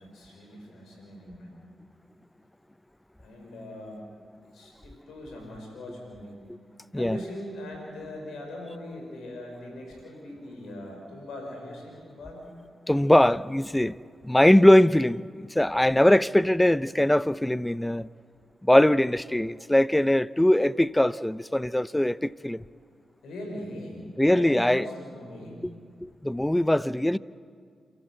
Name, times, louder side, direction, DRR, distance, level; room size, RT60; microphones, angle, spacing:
voice 1, 0.0-1.6 3.2-4.0 4.5-6.4 6.9-12.5 23.2-25.6, left 1 dB, 80° left, 6.1 m, -40 dB
voice 2, 12.9-14.0 14.2-18.1 18.6-22.6 24.2-24.9 26.0-27.2, left 1 dB, 10° left, 0.6 m, -21 dB
28.0 x 13.5 x 8.0 m
supercardioid pair, 45°, 0 cm